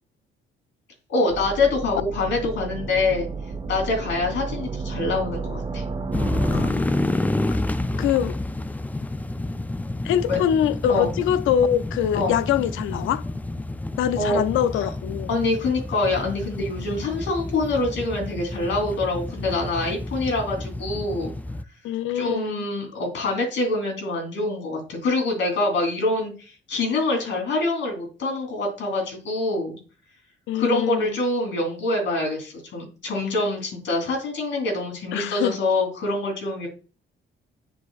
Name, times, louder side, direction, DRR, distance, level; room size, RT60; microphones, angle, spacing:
voice 1, 1.1-3.3 3.7-5.8 10.3-10.4 10.9-11.1 12.1-12.4 14.2-14.4 14.7-14.9 15.3-21.3 22.1-29.8 30.5-36.7, left 2 dB, 70° left, 3.5 m, -25 dB
sound 1, 1.3-6.7, right 4 dB, 25° right, 1.4 m, -32 dB
sound 2, 6.1-21.6, left 2 dB, 10° left, 0.3 m, -29 dB
voice 2, 6.5-7.4 8.0-8.4 10.0-13.2 14.0-15.3 21.8-22.6 30.5-31.2 35.1-35.6, left 10 dB, 85° left, 0.5 m, -24 dB
9.8 x 4.1 x 2.4 m
cardioid pair, 90°, 20 cm